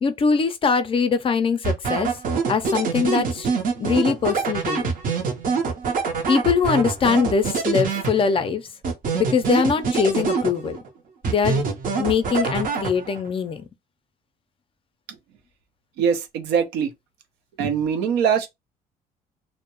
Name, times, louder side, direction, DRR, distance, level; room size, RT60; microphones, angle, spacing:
voice 1, 0.0-2.1 2.5-3.5 3.8-4.9 6.3-8.7 9.1-10.8 11.2-11.6 12.0-13.6, left 5 dB, 30° left, 0.4 m, -22 dB
sound 1, 1.6-8.5 8.8-10.9 11.2-13.3, right 5 dB, 55° right, 0.7 m, -25 dB
voice 2, 16.0-16.9 17.6-18.5, right 7 dB, 85° right, 0.6 m, -22 dB
2.2 x 2.1 x 2.9 m
cardioid pair, 110°, 17 cm